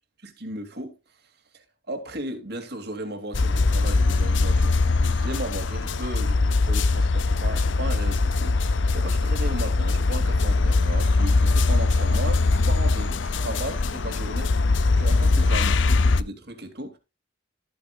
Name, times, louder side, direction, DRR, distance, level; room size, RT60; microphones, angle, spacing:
voice 1, 0.2-0.9 1.5-14.5 14.9-15.7 16.2-17.0, right 1 dB, 50° right, 2.7 m, -35 dB
sound 1, 3.3-16.2, left 3 dB, 65° left, 0.7 m, -21 dB
14.0 x 8.6 x 2.4 m
head